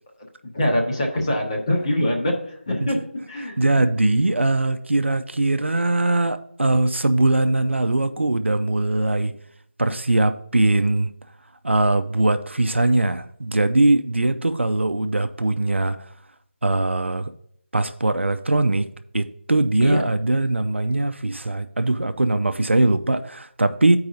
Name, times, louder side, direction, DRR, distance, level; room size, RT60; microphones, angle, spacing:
voice 1, 0.5-3.8 19.8-20.0, left 1 dB, 30° left, -1 dB, 1.2 m, -24 dB
voice 2, 3.6-9.3 9.8-11.1 11.6-16.0 16.6-17.3 17.7-18.9 19.1-24.0, right 2 dB, 70° right, 10 dB, 0.5 m, -21 dB
13.5 x 4.7 x 2.6 m, 0.68 s
figure-of-eight pair, 165°, 7 cm